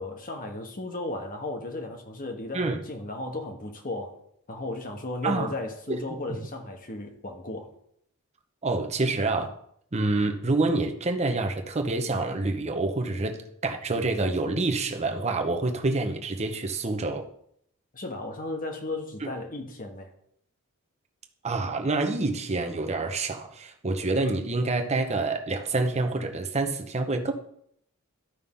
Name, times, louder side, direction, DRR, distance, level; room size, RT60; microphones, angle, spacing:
voice 1, 0.0-4.2 4.5-7.7 17.9-20.1, left 2 dB, 40° left, 1.2 m, -35 dB
voice 2, 8.6-9.5 9.9-17.3 21.4-27.3, right 2 dB, 30° right, 0.9 m, -27 dB
13.0 x 5.5 x 3.7 m
head